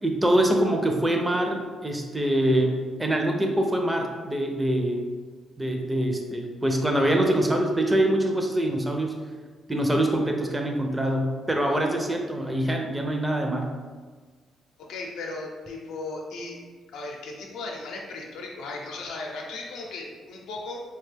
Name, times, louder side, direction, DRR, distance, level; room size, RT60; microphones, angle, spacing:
voice 1, 0.0-5.0 5.6-9.1 9.7-13.7, right 1 dB, 15° right, 2 dB, 0.5 m, -24 dB
voice 2, 14.8-16.6 16.9-20.8, left 3 dB, 85° left, -1 dB, 0.6 m, -36 dB
3.5 x 2.2 x 3.3 m, 1.5 s
cardioid pair, 90°, 0 cm